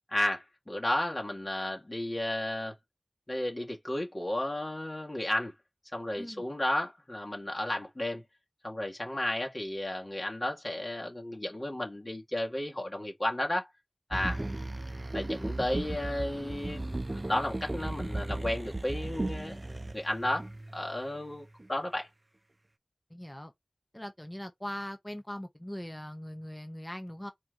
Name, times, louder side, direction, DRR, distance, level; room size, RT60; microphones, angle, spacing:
voice 1, 0.1-2.7 3.3-5.5 5.9-8.2 8.6-13.7 14.1-14.4 15.1-19.6 19.9-22.1, left 1 dB, 40° left, 2.1 m, -33 dB
sound 1, 14.1-21.1 21.6-21.7, right 2 dB, 40° right, 0.5 m, -36 dB
voice 2, 23.1-23.5 23.9-27.3, left 1 dB, 20° left, 1.1 m, -41 dB
4.4 x 3.1 x 3.9 m
wide cardioid pair, 55°, 0 cm